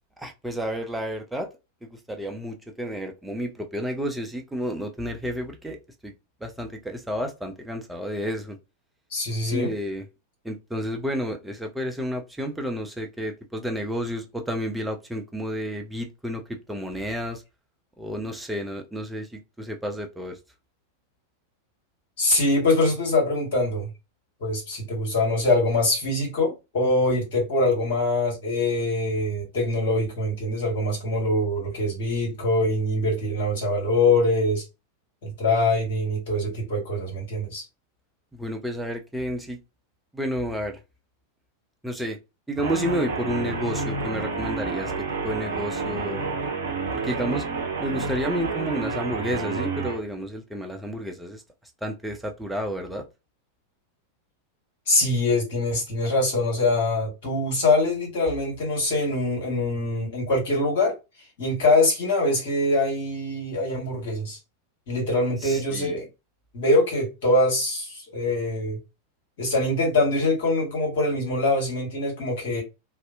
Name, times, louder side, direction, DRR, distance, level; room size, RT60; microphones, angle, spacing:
voice 1, 0.2-1.5 1.8-5.8 6.0-6.1 6.4-8.6 9.4-10.1 10.4-17.4 18.0-20.4 38.3-39.6 40.1-40.8 41.8-42.2 42.5-46.4 46.9-47.5 47.8-51.4 51.8-53.0 65.4-66.0, equal, 5° right, 0.5 m, -31 dB
voice 2, 9.1-9.7 22.2-23.9 24.4-34.6 35.2-37.6 54.9-60.9 61.4-64.4 64.9-66.1 66.5-68.8 69.4-72.6, left 2 dB, 55° left, 1.4 m, -23 dB
Guitar, 42.6-50.0, right 4 dB, 60° right, 0.8 m, -29 dB
2.6 x 2.1 x 2.5 m
figure-of-eight pair, 90°, 0 cm